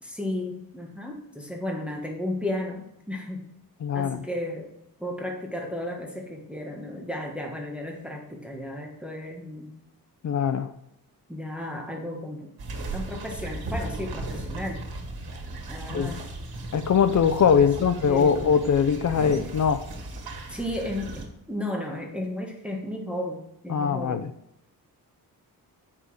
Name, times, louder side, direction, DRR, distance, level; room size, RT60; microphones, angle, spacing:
voice 1, 0.0-3.5 3.9-4.7 5.0-9.8 11.3-12.5 12.9-14.8 15.7-16.2 17.6-18.6 20.5-21.2 21.5-24.2, left 1 dB, 5° right, 0 dB, 1.3 m, -34 dB
voice 2, 3.8-4.3 10.2-10.7 15.9-16.1 16.7-19.8 23.7-24.3, left 7 dB, 50° left, 11 dB, 0.5 m, -22 dB
sound 1, 12.6-21.3, right 2 dB, 80° right, 1.9 m, -36 dB
8.0 x 5.9 x 4.8 m, 0.78 s
wide cardioid pair, 130°, 36 cm